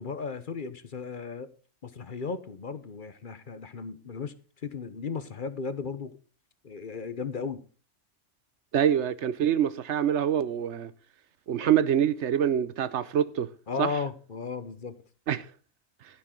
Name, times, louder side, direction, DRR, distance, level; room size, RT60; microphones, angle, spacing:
voice 1, 0.0-1.5 1.8-4.3 4.6-6.1 6.6-7.6 13.7-15.0, left 5 dB, 45° left, 1.0 m, -35 dB
voice 2, 8.7-10.9 11.5-13.5 13.8-13.9 15.3-15.5, right 9 dB, 70° right, 1.0 m, -25 dB
12.0 x 10.5 x 3.8 m
omnidirectional pair, 1.2 m